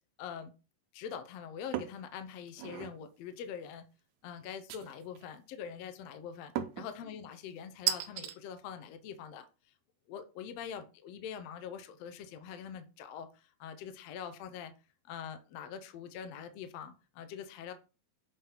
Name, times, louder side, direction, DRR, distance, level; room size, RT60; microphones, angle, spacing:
voice 1, 0.2-0.5 0.9-3.8 4.2-9.5 10.1-14.7 15.1-17.7, left 8 dB, 80° left, 9 dB, 1.5 m, -44 dB
sound 1, 1.7-2.0 2.5-3.0 4.7-5.2 6.6-6.9 7.9-8.3, right 11 dB, 80° right, 1.6 m, -35 dB
7.7 x 3.7 x 4.4 m, 0.32 s
omnidirectional pair, 3.9 m